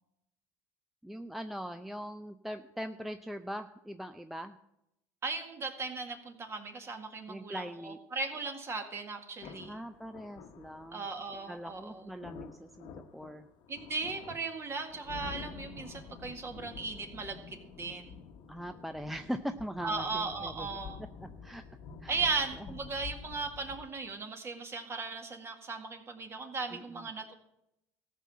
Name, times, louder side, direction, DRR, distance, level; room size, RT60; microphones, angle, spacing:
voice 1, 1.0-4.6 7.3-8.0 9.6-11.1 11.5-13.5 18.5-20.7 21.4-21.6 22.0-22.2 22.6-22.7 26.7-27.1, equal, ahead, 7 dB, 0.5 m, -41 dB
voice 2, 5.2-9.8 10.9-12.1 13.7-18.2 19.8-21.0 22.1-27.3, right 4 dB, 30° right, 5 dB, 1.9 m, -37 dB
sound 1, 9.4-23.9, left 6 dB, 65° left, 1.2 m, -49 dB
14.5 x 5.7 x 7.5 m, 0.84 s
supercardioid pair, 95°, 8 cm